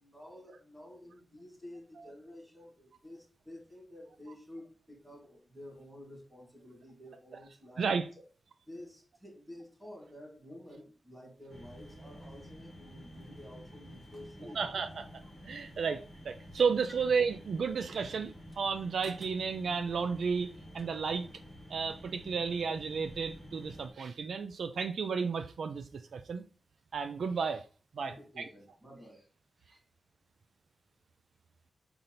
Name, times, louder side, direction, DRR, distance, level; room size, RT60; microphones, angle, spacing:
voice 1, 0.0-7.9 8.6-14.6 28.0-29.3 29.6-29.8, left 1 dB, 10° right, 2.6 m, -51 dB
voice 2, 7.8-8.1 14.6-15.1 15.4-21.3 21.7-26.4 26.9-27.6 28.0-28.5, right 5 dB, 75° right, 0.4 m, -33 dB
sound 1, 11.5-23.9, equal, 30° right, 2.1 m, -50 dB
6.0 x 5.2 x 4.1 m
wide cardioid pair, 160°, 0 cm